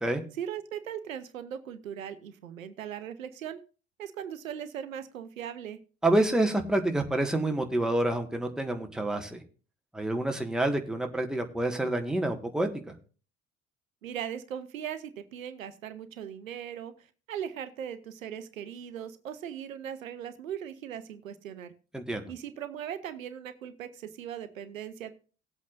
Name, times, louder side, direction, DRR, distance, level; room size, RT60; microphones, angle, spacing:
voice 1, 0.4-3.6 4.0-5.8 14.0-16.9 17.3-21.7 22.3-25.1, right 9 dB, 80° right, 12 dB, 0.8 m, -39 dB
voice 2, 6.0-9.4 9.9-12.7 21.9-22.3, right 1 dB, ahead, 3 dB, 1.5 m, -28 dB
18.5 x 8.2 x 2.5 m, 0.36 s
figure-of-eight pair, 55°, 40 cm